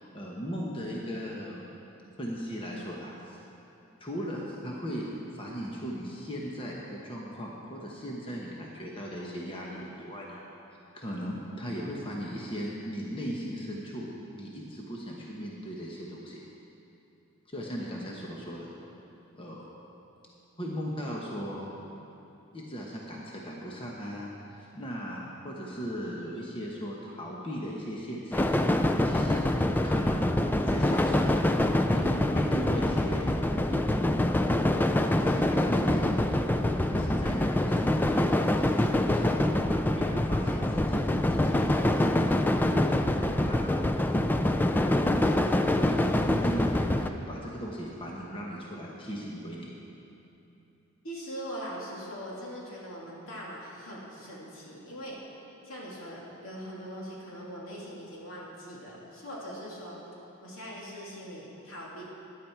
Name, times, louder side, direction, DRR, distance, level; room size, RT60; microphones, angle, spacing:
voice 1, 0.0-1.7 2.2-3.4 4.0-10.4 10.9-14.1 14.3-16.4 17.5-18.7 19.4-19.7 20.6-21.7 22.5-29.4 29.8-31.4 31.9-33.4 33.7-34.1 35.2-42.2 42.6-43.9 44.6-49.7, equal, 25° left, -3 dB, 1.1 m, -38 dB
sound 1, 28.3-47.1, left 1 dB, 10° left, 0.3 m, -25 dB
voice 2, 51.0-55.2 55.6-60.0 60.4-62.0, equal, 75° left, -4 dB, 2.8 m, -41 dB
14.5 x 10.5 x 4.6 m, 3.0 s
head